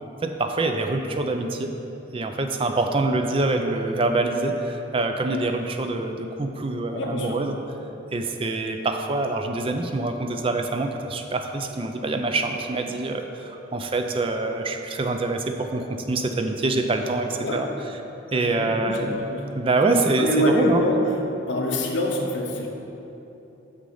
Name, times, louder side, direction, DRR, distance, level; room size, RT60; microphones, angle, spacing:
voice 1, 0.2-1.7 2.1-7.6 8.1-17.7 18.3-19.1 19.5-20.8, right 2 dB, 30° right, 5 dB, 0.4 m, -25 dB
voice 2, 6.9-7.4 17.4-17.7 18.3-19.4 20.2-21.1 21.5-22.7, equal, 70° left, 1 dB, 1.0 m, -25 dB
6.6 x 6.1 x 5.6 m, 3.0 s
head